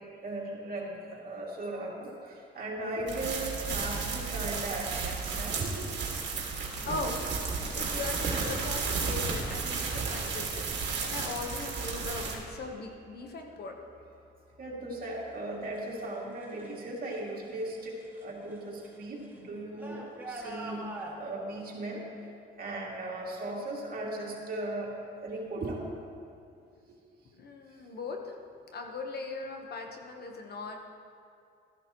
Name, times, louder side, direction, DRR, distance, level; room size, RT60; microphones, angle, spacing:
voice 1, 0.0-5.9 7.2-7.3 14.6-20.9 21.1-22.1 22.6-24.9 25.2-25.8, right 2 dB, 45° right, -3 dB, 2.6 m, -37 dB
sound 1, 3.1-12.4, right 5 dB, 60° right, 2.1 m, -33 dB
voice 2, 6.9-10.7 11.0-13.7 27.4-28.3 28.7-30.8, left 3 dB, 55° left, 3 dB, 1.2 m, -39 dB
sound 2, 12.8-16.8 17.1-21.1, right 2 dB, 10° right, 1.9 m, -47 dB
14.0 x 11.0 x 3.1 m, 2.4 s
cardioid pair, 90°, 20 cm